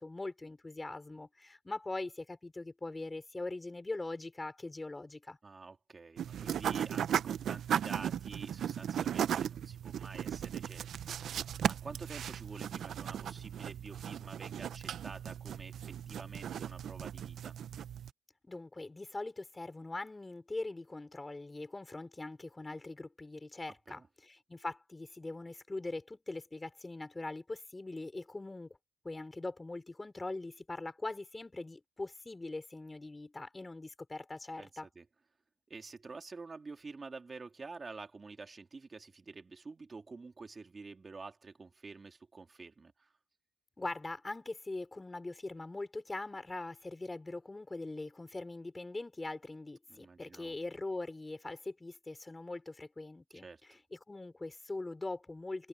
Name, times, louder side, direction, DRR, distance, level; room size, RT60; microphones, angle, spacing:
voice 1, 0.0-5.4 18.4-28.8 29.0-34.9 43.8-55.7, left 2 dB, 20° left, 5.3 m, -42 dB
voice 2, 5.4-17.6 23.9-24.1 34.6-34.7 34.9-35.0 35.7-43.1 49.9-50.5 53.3-53.6, right 4 dB, 30° right, 3.1 m, -49 dB
sound 1, 6.2-18.1, right 9 dB, 65° right, 0.8 m, -37 dB
cardioid pair, 90°, 0 cm